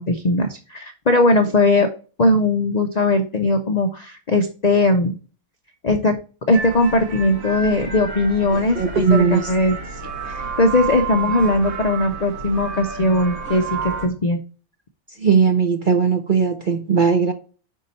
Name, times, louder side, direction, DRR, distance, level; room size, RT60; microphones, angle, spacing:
voice 1, 0.0-1.9 2.2-5.2 5.8-6.2 6.5-9.8 10.3-14.4, left 2 dB, 60° left, 0.4 m, -19 dB
sound 1, 6.5-14.1, right 5 dB, 70° right, 1.6 m, -30 dB
voice 2, 8.5-9.5 15.2-17.3, right 5 dB, 55° right, 0.5 m, -18 dB
5.4 x 4.6 x 4.1 m
omnidirectional pair, 1.5 m